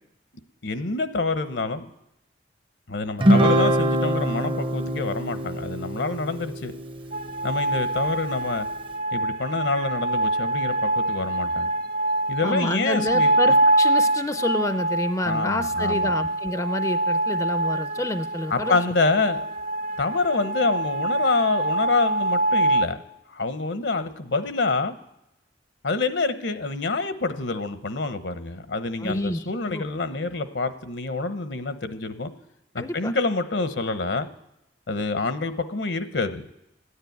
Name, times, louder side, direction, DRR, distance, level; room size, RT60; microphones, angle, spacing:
voice 1, 0.6-1.9 2.9-6.7 7.4-8.7 9.1-11.7 12.3-13.6 15.2-16.1 18.5-19.4 20.0-23.0 23.3-25.0 25.8-32.3 32.7-34.3 34.9-36.5, left 3 dB, 75° left, 10 dB, 1.0 m, -27 dB
Guitar, 3.2-7.8, right 1 dB, 30° right, 0.6 m, -24 dB
sound 1, 7.1-22.8, right 1 dB, 50° right, 0.9 m, -25 dB
voice 2, 12.4-18.8 29.0-29.9 32.8-33.1, left 1 dB, 15° left, 10 dB, 0.4 m, -28 dB
13.5 x 9.9 x 9.4 m, 0.86 s
head